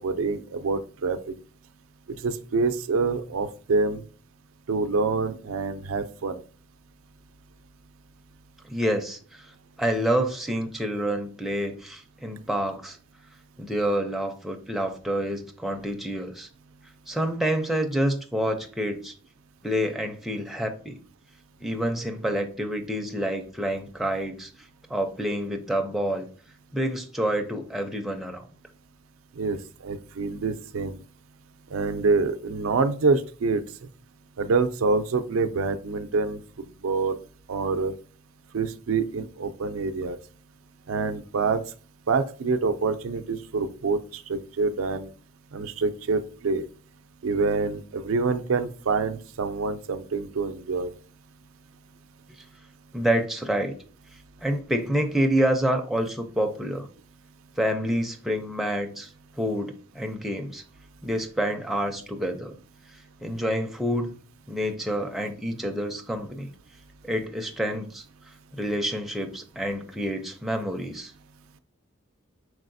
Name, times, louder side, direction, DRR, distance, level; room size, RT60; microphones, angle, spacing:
voice 1, 0.0-1.3 2.2-4.0 4.7-6.4 29.4-29.6 29.8-31.0 31.7-33.6 34.4-36.4 36.8-37.2 37.5-37.9 38.5-40.2 40.9-41.6 42.1-45.1 45.5-46.6 47.2-50.9, right 4 dB, 90° right, 10 dB, 0.4 m, -26 dB
voice 2, 8.6-13.0 13.6-16.5 17.1-19.1 19.6-21.0 21.6-24.5 24.9-26.3 26.7-28.5 52.9-53.8 54.4-56.9 57.6-60.6 61.0-62.6 63.2-64.1 64.5-66.5 67.0-68.0 68.5-71.1, equal, ahead, 3 dB, 0.4 m, -28 dB
4.7 x 4.0 x 2.6 m, 0.40 s
head